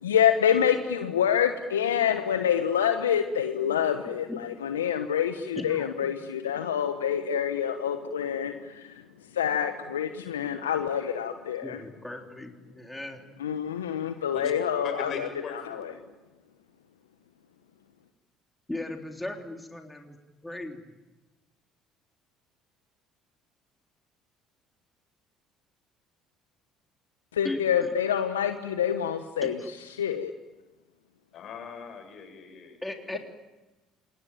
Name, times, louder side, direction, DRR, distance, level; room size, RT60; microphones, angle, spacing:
voice 1, 0.0-9.0 9.3-11.8 13.4-15.3 15.7-15.9 27.3-29.6 30.0-30.3, left 9 dB, 85° left, 8 dB, 1.2 m, -27 dB
voice 2, 5.5-6.1 11.6-13.2 18.7-20.2 20.4-20.9 27.4-27.9 29.4-29.7 32.8-33.2, left 1 dB, 10° left, 3 dB, 3.5 m, -37 dB
voice 3, 14.8-15.9 31.3-32.8, left 6 dB, 55° left, 5 dB, 7.8 m, -38 dB
27.0 x 21.0 x 9.2 m, 1.1 s
hypercardioid pair, 55°, 0 cm